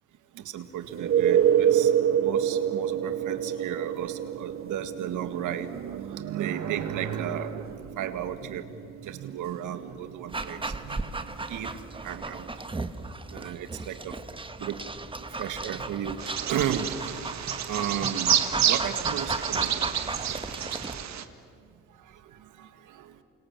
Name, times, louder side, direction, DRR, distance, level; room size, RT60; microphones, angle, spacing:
voice 1, 0.3-1.9 2.2-8.8 9.0-12.5 13.3-14.2 14.6-14.8 15.3-16.2 16.5-16.9 17.2-19.8 21.9-23.2, right 9 dB, 80° right, 9 dB, 1.9 m, -34 dB
sound 1, 0.9-12.4 16.7-16.8, right 9 dB, 45° right, 0.7 m, -28 dB
Dog, 10.3-21.0, right 3 dB, 15° right, 1.3 m, -35 dB
Bird vocalization bird call bird song, 16.2-21.2, right 9 dB, 65° right, 1.7 m, -29 dB
29.0 x 26.0 x 7.5 m, 2.3 s
cardioid pair, 90°, 30 cm